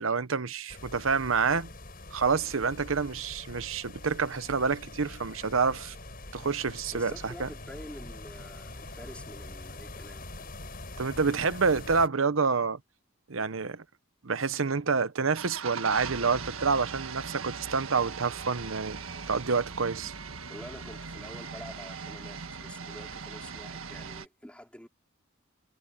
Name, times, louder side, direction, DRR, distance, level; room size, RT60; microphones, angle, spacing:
voice 1, 0.0-1.7 2.1-5.9 6.3-7.5 11.0-12.8 13.3-13.8 14.2-19.0 19.3-20.1, right 5 dB, 70° right, 0.9 m, -28 dB
sound 1, 0.7-12.1, left 2 dB, 45° left, 6.4 m, -44 dB
voice 2, 6.9-10.5 20.5-24.9, equal, 5° left, 4.3 m, -47 dB
sound 2, 15.3-24.3, right 5 dB, 90° right, 1.6 m, -40 dB
head